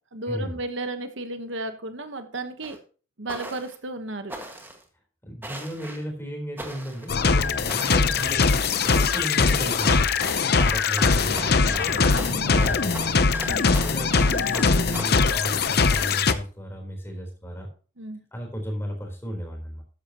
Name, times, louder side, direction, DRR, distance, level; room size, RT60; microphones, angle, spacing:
voice 1, 0.1-2.8 3.2-4.3 12.1-12.7 13.5-13.7 18.0-18.2, right 2 dB, 70° right, 8 dB, 1.2 m, -34 dB
sound 1, 2.6-2.8 3.3-3.8 4.3-4.8 5.4-6.0 6.6-7.1 7.7-8.2 9.8-15.1, right 1 dB, 10° right, 1.8 m, -39 dB
voice 2, 5.2-8.5 8.8-17.7 18.3-19.8, equal, 10° left, 1 dB, 3.9 m, -34 dB
sound 2, 7.1-16.3, left 4 dB, 55° left, 0.7 m, -21 dB
13.0 x 10.0 x 3.0 m, 0.38 s
head